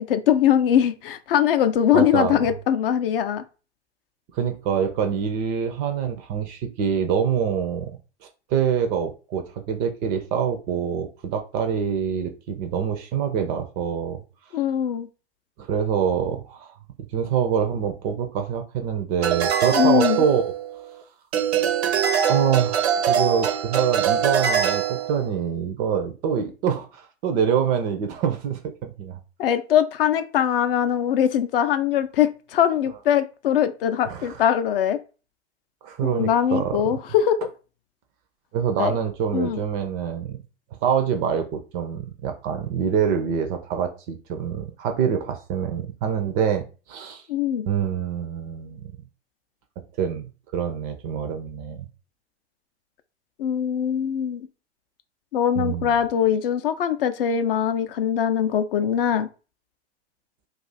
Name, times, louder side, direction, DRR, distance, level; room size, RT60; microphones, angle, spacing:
voice 1, 0.0-3.4 14.5-15.1 19.7-20.2 29.4-35.0 36.0-37.5 38.8-39.0 39.3-39.6 47.3-47.7 53.4-54.5 55.3-59.3, left 9 dB, 55° left, 10 dB, 0.5 m, -22 dB
voice 2, 1.9-2.4 4.3-8.0 8.5-14.2 15.6-16.7 17.1-20.5 22.3-29.2 34.1-34.4 35.8-36.8 38.5-40.4 40.8-46.6 46.9-47.2 47.6-48.9 50.0-51.9 55.6-56.0, right 7 dB, 25° right, 6 dB, 0.4 m, -25 dB
sound 1, 19.2-20.9 21.3-25.3, right 8 dB, 70° right, 0.6 m, -23 dB
2.4 x 2.4 x 4.0 m, 0.34 s
figure-of-eight pair, 100°, 34 cm